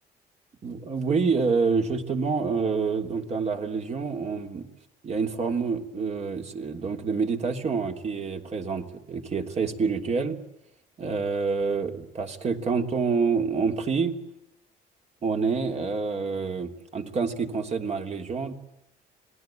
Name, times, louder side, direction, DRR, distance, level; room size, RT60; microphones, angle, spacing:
voice 1, 0.6-4.7 5.0-10.4 11.0-14.2 15.2-18.5, right 5 dB, 40° right, 4 dB, 3.2 m, -27 dB
27.5 x 20.0 x 9.0 m, 0.88 s
cardioid pair, 110°, 17 cm